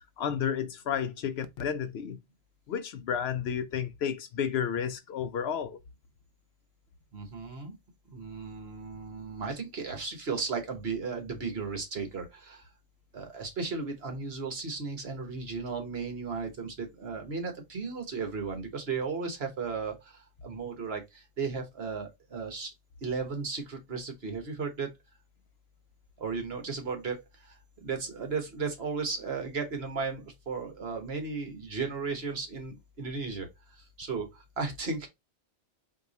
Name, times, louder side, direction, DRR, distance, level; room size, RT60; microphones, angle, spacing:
voice 1, 0.2-2.2 2.7-5.8, left 8 dB, 65° left, 0.8 m, -31 dB
voice 2, 7.1-7.8 8.1-12.7 13.1-22.7 23.0-24.9 26.2-35.1, right 4 dB, 60° right, 1.4 m, -35 dB
4.5 x 2.8 x 4.0 m
omnidirectional pair, 1.2 m